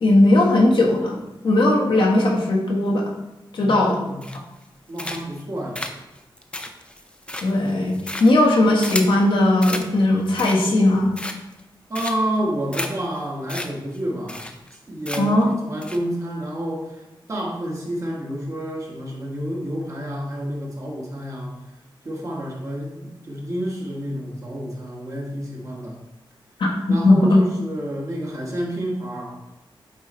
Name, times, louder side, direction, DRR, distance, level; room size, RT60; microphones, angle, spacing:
voice 1, 0.0-1.2 1.4-3.0 3.5-3.9 7.4-11.1 15.2-15.5 26.6-26.7 27.0-27.4, left 1 dB, 70° left, -2 dB, 1.4 m, -17 dB
voice 2, 3.6-4.2 4.9-5.9 11.9-14.5 14.9-15.3 15.6-17.0 17.3-21.5 22.0-26.0 26.9-29.4, right 1 dB, 40° right, -2 dB, 1.4 m, -29 dB
sound 1, 4.2-4.6 5.0-5.4 5.7-9.2 9.6-9.9 10.2-10.8 11.1-11.6 11.9-12.4 12.7-12.9 13.2-13.3 13.5-13.7 13.9-14.0 14.3-14.8 15.0-15.4 15.8-16.0, left 1 dB, 10° left, 0.5 m, -32 dB
8.0 x 3.2 x 4.3 m, 0.97 s
wide cardioid pair, 135°, 9 cm